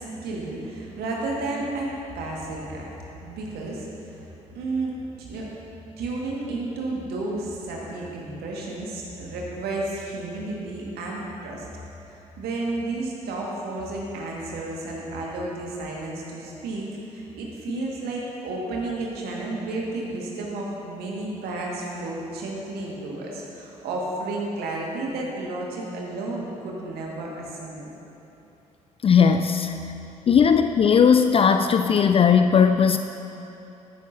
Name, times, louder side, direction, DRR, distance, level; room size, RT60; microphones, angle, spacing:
voice 1, 0.0-4.3 4.5-5.5 6.0-11.7 12.4-27.9, right 2 dB, 60° right, -2 dB, 1.8 m, -32 dB
voice 2, 29.0-29.7 30.3-33.0, left 6 dB, 30° left, 7 dB, 0.4 m, -17 dB
14.0 x 11.0 x 2.7 m, 2.9 s
figure-of-eight pair, 45°, 19 cm